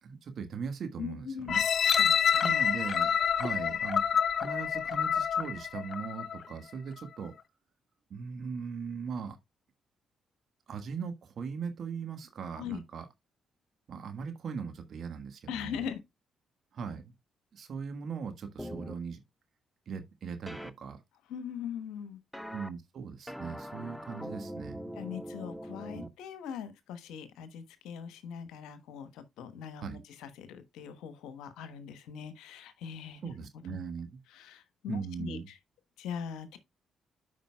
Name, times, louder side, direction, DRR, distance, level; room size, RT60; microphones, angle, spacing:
voice 1, 0.0-1.6 2.4-4.0 4.4-7.3 8.1-9.4 10.7-13.1 13.9-15.8 16.7-17.1 17.5-19.2 19.9-21.0 22.5-24.8 25.9-26.1 29.8-30.0 33.2-34.1 34.9-35.5, right 6 dB, 60° right, 1.5 m, -39 dB
voice 2, 1.0-1.6 1.9-2.5 12.6-12.8 15.5-16.0 21.3-22.2 25.0-33.3 33.7-33.8 34.3-35.6 36.0-36.6, left 8 dB, 75° left, 1.1 m, -41 dB
sound 1, 1.5-6.4 7.0-7.1, left 8 dB, 55° left, 0.5 m, -27 dB
sound 2, 18.6-18.9 20.5-20.7 22.3-22.7 23.3-26.1, equal, 5° left, 0.9 m, -41 dB
12.5 x 5.1 x 2.3 m
hypercardioid pair, 40°, 0 cm